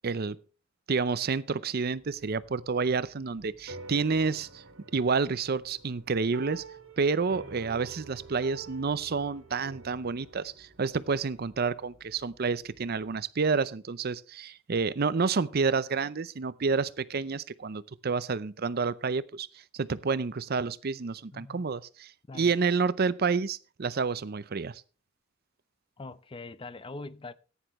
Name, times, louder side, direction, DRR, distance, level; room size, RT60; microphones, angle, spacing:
voice 1, 0.0-0.4 0.9-4.6 4.9-6.6 7.0-19.5 19.7-24.8, right 4 dB, 50° right, 0.6 m, -29 dB
sound 1, 1.8-13.2, equal, 25° right, 3.5 m, -62 dB
sound 2, 3.7-12.4, right 3 dB, 80° right, 2.0 m, -48 dB
voice 2, 21.3-21.7 22.3-22.5 26.0-27.3, left 3 dB, 25° left, 0.6 m, -42 dB
14.5 x 10.0 x 3.1 m
head